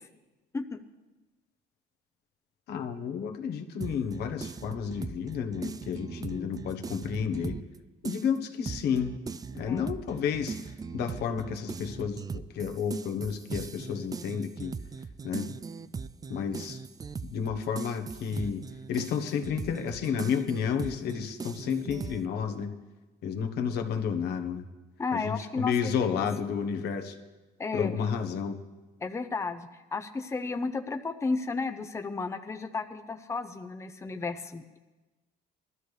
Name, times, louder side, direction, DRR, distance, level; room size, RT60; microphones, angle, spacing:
voice 1, 2.7-7.6 8.0-9.2 9.5-10.6 10.9-14.7 15.2-15.5 16.3-16.8 17.2-18.6 18.9-22.7 23.2-24.6 25.1-27.2 27.7-28.6, left 7 dB, 75° left, 7 dB, 1.3 m, -31 dB
sound 1, 3.8-7.8 8.0-22.2, right 5 dB, 20° right, 0.4 m, -39 dB
voice 2, 6.2-6.6 9.7-9.9 25.0-25.9 27.6-27.9 29.0-34.8, left 4 dB, 15° left, 8 dB, 0.7 m, -33 dB
20.0 x 12.5 x 3.3 m, 1.2 s
cardioid pair, 110°, 17 cm